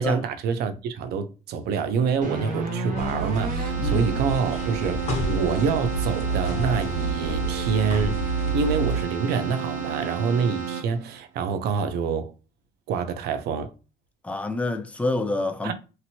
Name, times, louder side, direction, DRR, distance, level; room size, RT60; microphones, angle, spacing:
voice 1, 0.0-8.2 8.5-12.3 12.9-13.7 15.6-15.7, right 6 dB, 75° right, 0.5 m, -26 dB
Keyboard (musical), 2.2-11.2, right 6 dB, 50° right, 1.0 m, -32 dB
sound 1, 3.0-9.0, right 3 dB, 40° left, 1.0 m, -28 dB
voice 2, 14.2-15.7, left 2 dB, 10° left, 0.4 m, -27 dB
2.9 x 2.5 x 2.7 m
cardioid pair, 110°, 17 cm